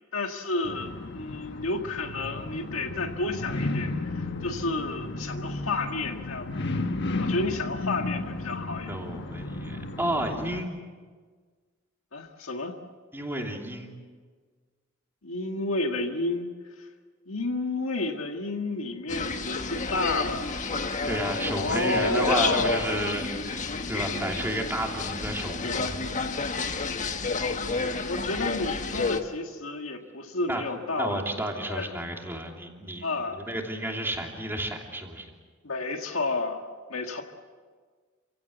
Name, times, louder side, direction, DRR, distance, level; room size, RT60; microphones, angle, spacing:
voice 1, 0.1-6.5 7.2-9.0 12.1-12.8 15.2-16.5 16.8-16.9 17.3-20.5 21.6-23.0 27.4-27.7 28.1-31.2 31.7-31.9 33.0-33.5 35.6-37.2, left 2 dB, 85° left, 3 dB, 1.8 m, -31 dB
sound 1, 0.6-10.6, left 2 dB, 60° left, 1.3 m, -33 dB
voice 2, 8.9-10.8 13.1-13.9 21.1-26.0 30.5-30.6 31.0-33.1 33.3-35.3, right 1 dB, 10° right, 1 dB, 2.9 m, -31 dB
sound 2, 19.1-29.2, left 4 dB, 40° left, 1.3 m, -30 dB
28.0 x 16.5 x 8.1 m, 1.5 s
head